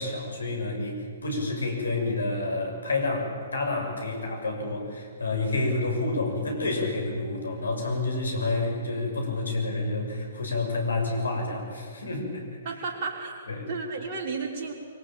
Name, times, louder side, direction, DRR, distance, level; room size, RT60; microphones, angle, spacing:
voice 1, 0.0-12.4 13.5-13.6, left 2 dB, 70° left, 2 dB, 6.8 m, -29 dB
voice 2, 12.6-13.3 13.7-14.7, right 4 dB, 40° right, -1 dB, 5.6 m, -32 dB
24.5 x 24.0 x 8.9 m, 2.1 s
figure-of-eight pair, 120°, 0 cm